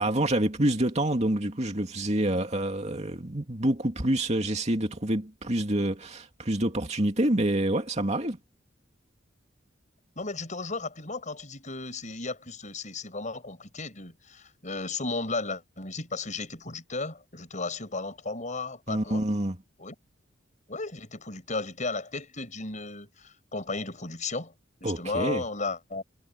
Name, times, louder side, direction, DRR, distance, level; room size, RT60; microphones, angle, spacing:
voice 1, 0.0-8.4 18.9-19.6 24.8-25.4, right 1 dB, 35° right, 2.6 m, -27 dB
voice 2, 10.2-19.2 19.8-20.0 20.7-24.5 24.8-26.0, left 3 dB, 40° left, 6.8 m, -34 dB
head